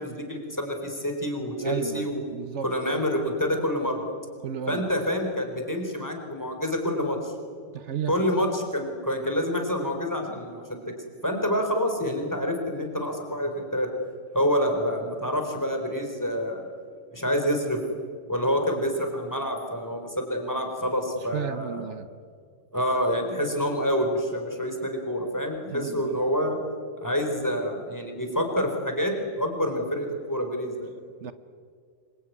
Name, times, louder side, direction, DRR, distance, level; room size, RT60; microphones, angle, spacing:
voice 1, 0.0-2.2 2.6-4.1 4.7-7.3 8.1-10.8 11.2-13.9 14.3-16.7 17.1-17.8 18.3-21.8 22.7-26.6 27.0-29.1 29.4-30.9, equal, 15° left, 3 dB, 4.2 m, -27 dB
voice 2, 1.6-2.7 4.4-4.8 7.7-8.1 21.3-22.1 25.7-26.2 31.2-31.3, right 8 dB, 70° right, 12 dB, 1.2 m, -33 dB
27.5 x 22.5 x 9.4 m, 2.1 s
omnidirectional pair, 1.3 m